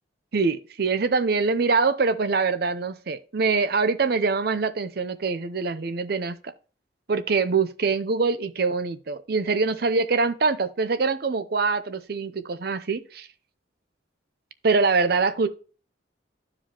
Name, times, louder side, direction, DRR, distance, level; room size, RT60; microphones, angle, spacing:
voice 1, 0.3-6.4 7.1-13.3 14.6-15.5, right 4 dB, 55° right, 0.6 m, -24 dB
12.0 x 4.9 x 2.9 m
head